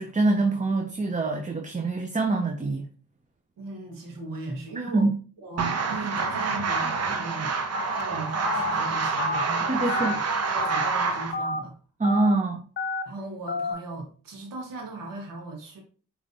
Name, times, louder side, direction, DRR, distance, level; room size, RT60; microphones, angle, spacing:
voice 1, 0.0-2.9 4.9-5.1 9.7-10.1 12.0-12.6, right 2 dB, 25° right, 0.8 m, -24 dB
voice 2, 3.6-5.1 5.4-10.0 10.4-11.7 13.0-15.8, right 2 dB, 85° right, 1.5 m, -38 dB
sound 1, 5.6-11.3, right 4 dB, 50° right, 0.9 m, -27 dB
Telephone, 7.7-8.0 8.5-8.7 9.2-9.4 9.9-10.2 10.6-10.9 11.3-11.6 12.0-12.3 12.8-13.0 13.5-13.7, left 3 dB, 35° left, 0.7 m, -30 dB
5.0 x 3.2 x 2.7 m
supercardioid pair, 50°, 33 cm